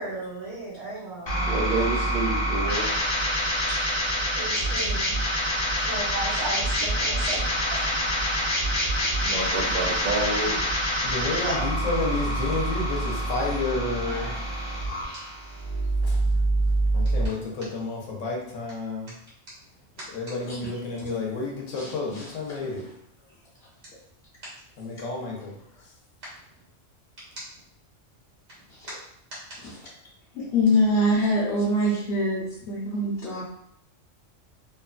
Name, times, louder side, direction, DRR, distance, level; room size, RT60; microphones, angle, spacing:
voice 1, 0.0-1.7 3.7-3.8 4.4-5.2 5.8-8.0 11.5-11.7 14.0-14.4, right 2 dB, 90° right, -7 dB, 1.2 m, -35 dB
sound 1, 1.3-17.3, equal, 35° left, 0.4 m, -26 dB
voice 2, 1.4-2.9 9.2-10.7, right 2 dB, 60° right, -1 dB, 0.6 m, -28 dB
voice 3, 11.0-14.3 16.0-16.1 16.9-19.1 20.1-22.8 24.8-25.6, left 3 dB, 85° left, -1 dB, 1.1 m, -30 dB
voice 4, 21.7-22.6 28.7-28.9 29.6-29.7 30.3-33.4, left 1 dB, 60° left, -8 dB, 0.9 m, -25 dB
2.9 x 2.2 x 2.4 m, 0.72 s
omnidirectional pair, 1.3 m